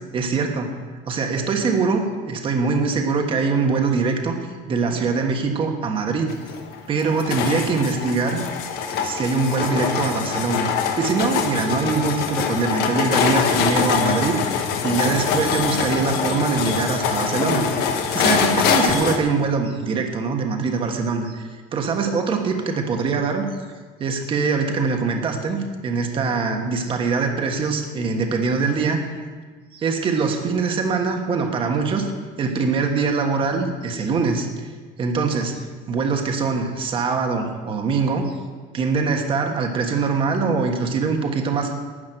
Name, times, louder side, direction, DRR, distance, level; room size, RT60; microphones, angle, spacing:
voice 1, 0.1-0.7 1.1-4.4 4.7-6.3 6.9-8.5 9.0-10.7 11.0-17.8 18.1-23.4 24.0-25.6 25.8-29.0 29.7-32.1 32.4-34.7 35.0-35.6 35.9-38.3 38.7-41.7, right 4 dB, 30° right, 4 dB, 1.4 m, -23 dB
sound 1, 6.3-19.2, left 7 dB, 60° left, 1.3 m, -23 dB
12.5 x 6.3 x 9.0 m, 1.5 s
cardioid pair, 175°, 18 cm